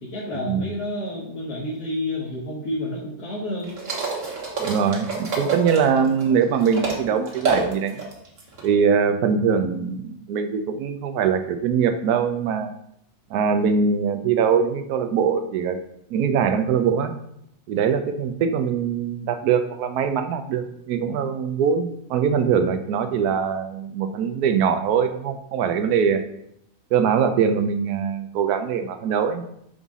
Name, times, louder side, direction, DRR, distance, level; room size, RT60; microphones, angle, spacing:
voice 1, 0.0-3.7, left 1 dB, 75° left, -5 dB, 1.8 m, -30 dB
sound 1, 3.6-7.0 7.3-8.7, right 4 dB, 55° right, 1.6 m, -28 dB
voice 2, 4.6-8.0 8.6-12.7 13.3-15.8 16.1-17.1 17.7-26.2 26.9-29.4, right 6 dB, 75° right, 8 dB, 1.1 m, -22 dB
5.6 x 5.0 x 3.6 m, 0.75 s
omnidirectional pair, 1.7 m